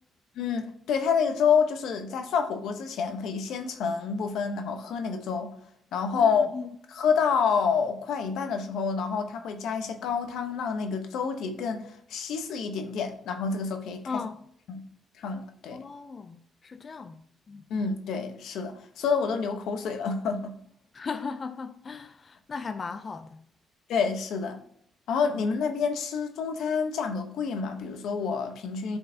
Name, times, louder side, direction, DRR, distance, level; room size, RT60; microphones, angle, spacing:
voice 1, 0.4-5.5 5.9-6.5 6.9-14.2 14.7-14.8 15.2-15.8 17.7-20.6 23.9-24.6 25.1-29.0, left 6 dB, 80° left, 0.9 m, -28 dB
voice 2, 6.2-6.7 14.1-14.4 15.7-17.2 17.5-17.7 20.9-23.4, left 5 dB, 30° left, 0.3 m, -37 dB
12.0 x 4.6 x 2.7 m
cardioid pair, 145°, 0 cm